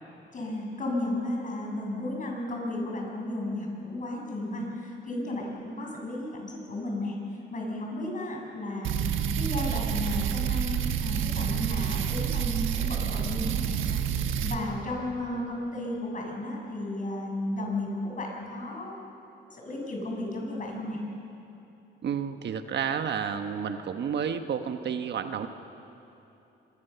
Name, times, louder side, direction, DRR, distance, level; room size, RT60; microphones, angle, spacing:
voice 1, 0.3-19.1 19.5-21.0, left 1 dB, 40° left, -1 dB, 7.2 m, -34 dB
sound 1, 8.8-14.6, right 9 dB, 80° right, 1.4 m, -28 dB
voice 2, 22.0-25.5, right 7 dB, 60° right, 7 dB, 1.3 m, -31 dB
25.0 x 22.5 x 7.0 m, 2.9 s
cardioid pair, 90°, 20 cm